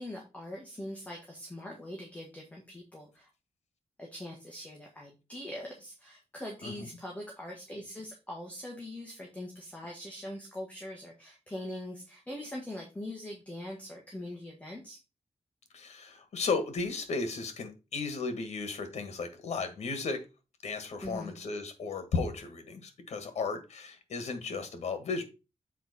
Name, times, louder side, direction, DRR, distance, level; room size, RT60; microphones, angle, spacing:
voice 1, 0.0-3.3 4.0-15.0 21.0-21.3, left 1 dB, 10° left, -1 dB, 1.7 m, -42 dB
voice 2, 15.7-20.2 20.6-25.2, left 4 dB, 85° left, 8 dB, 1.5 m, -35 dB
7.4 x 4.5 x 4.2 m, 0.29 s
wide cardioid pair, 145°, 11 cm